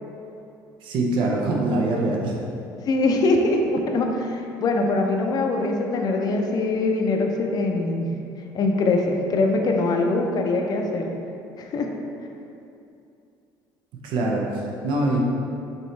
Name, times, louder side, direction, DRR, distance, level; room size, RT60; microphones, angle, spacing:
voice 1, 0.8-2.4 14.0-15.2, right 2 dB, 70° right, -1 dB, 0.7 m, -24 dB
voice 2, 2.9-8.1 8.5-11.1 11.6-11.9, left 2 dB, 50° left, 2 dB, 0.5 m, -23 dB
5.3 x 3.0 x 3.2 m, 2.6 s
supercardioid pair, 95°, 9 cm